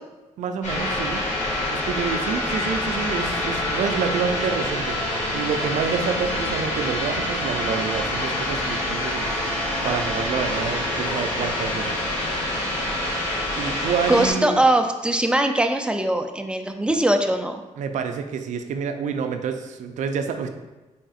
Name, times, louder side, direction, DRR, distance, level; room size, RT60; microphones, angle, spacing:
voice 1, 0.4-1.2 1.7-9.4 9.8-12.0 13.6-14.6 17.8-20.5, right 6 dB, 75° right, 7 dB, 0.4 m, -28 dB
sound 1, 0.6-14.3, left 1 dB, 75° left, 1.3 m, -26 dB
voice 2, 14.1-17.6, right 1 dB, 10° right, 6 dB, 0.3 m, -21 dB
3.9 x 3.5 x 2.4 m, 1.1 s
cardioid pair, 85°, 13 cm